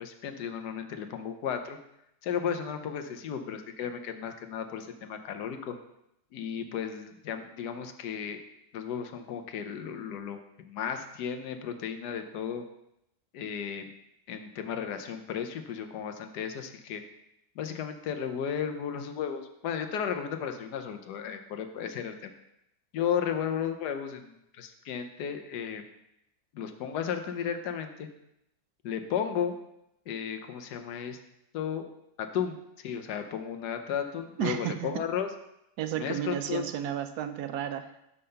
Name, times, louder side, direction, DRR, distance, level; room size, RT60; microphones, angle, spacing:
voice 1, 0.0-1.8 2.2-5.8 6.3-8.4 8.7-12.6 13.3-13.9 14.3-17.0 17.6-22.3 22.9-25.8 26.5-28.1 28.8-29.6 30.1-31.2 31.5-31.9 32.2-35.3 35.9-36.6, left 8 dB, 75° left, 7 dB, 1.3 m, -34 dB
voice 2, 34.4-34.9 35.8-38.0, right 11 dB, 75° right, 9 dB, 1.0 m, -32 dB
5.6 x 5.5 x 6.6 m, 0.82 s
omnidirectional pair, 1.8 m